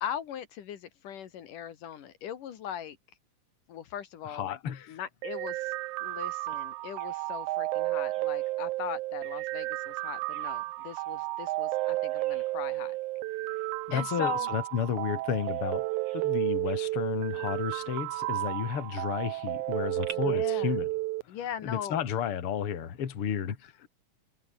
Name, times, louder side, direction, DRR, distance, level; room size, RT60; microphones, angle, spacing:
voice 1, 0.0-3.0 3.7-5.7 6.0-13.0 13.9-14.5 20.1-20.7 21.3-22.0, left 9 dB, 75° left, 3.3 m, -39 dB
voice 2, 4.3-5.0 13.9-20.9 21.6-23.7, left 8 dB, 45° left, 2.8 m, -32 dB
sound 1, 5.2-21.2, right 19 dB, 80° right, 1.9 m, -32 dB
Bird vocalization bird call bird song, 6.5-20.1, right 4 dB, 40° right, 4.4 m, -55 dB
omnidirectional pair, 3.8 m